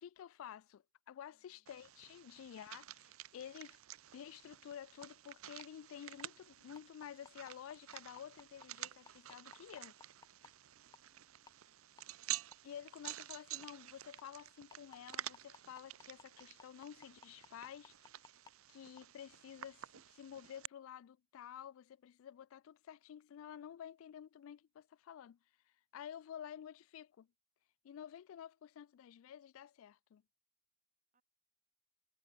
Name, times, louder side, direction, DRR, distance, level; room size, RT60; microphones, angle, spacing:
voice 1, 0.0-3.8 4.1-9.9 12.6-17.9 18.7-25.4 25.9-27.3 27.8-30.2, left 9 dB, 70° left, 0.3 m, -51 dB
voice 2, 1.3-1.7 10.8-12.2 31.1-31.2, right 1 dB, 40° right, 5.5 m, -84 dB
sound 1, 1.7-20.7, right 13 dB, 80° right, 0.7 m, -50 dB
sound 2, 5.0-5.1 5.6-5.7 6.2-6.3 6.7-10.5 10.9-11.1 11.5-11.6 12.0-12.1 12.5-12.6 13.1-13.2 13.6-13.7 14.2-14.3 14.7-18.5 19.0-19.1, left 4 dB, 20° left, 0.8 m, -56 dB
head